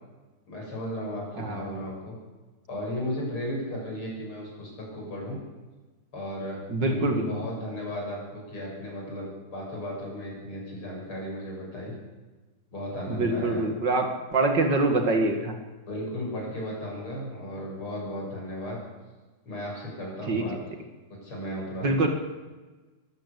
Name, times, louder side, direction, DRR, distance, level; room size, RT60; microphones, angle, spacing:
voice 1, 0.5-2.1 2.7-5.4 6.1-11.9 12.7-13.6 15.9-18.8 19.4-20.6 21.2-22.0, equal, 75° left, -2 dB, 8.0 m, -35 dB
voice 2, 1.4-1.7 6.7-7.3 13.1-15.5 20.3-20.4 21.8-22.1, right 2 dB, 55° right, 5 dB, 2.7 m, -25 dB
22.5 x 13.5 x 8.4 m, 1.2 s
omnidirectional pair, 2.4 m